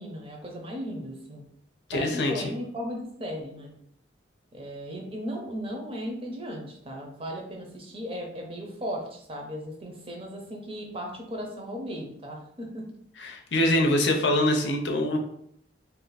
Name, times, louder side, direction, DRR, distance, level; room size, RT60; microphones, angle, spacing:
voice 1, 0.0-1.4 1.9-3.7 4.5-12.8, equal, 30° right, 0 dB, 0.7 m, -36 dB
voice 2, 1.9-2.5 13.2-15.2, left 1 dB, 80° left, 3 dB, 0.6 m, -24 dB
2.7 x 2.4 x 3.9 m, 0.69 s
head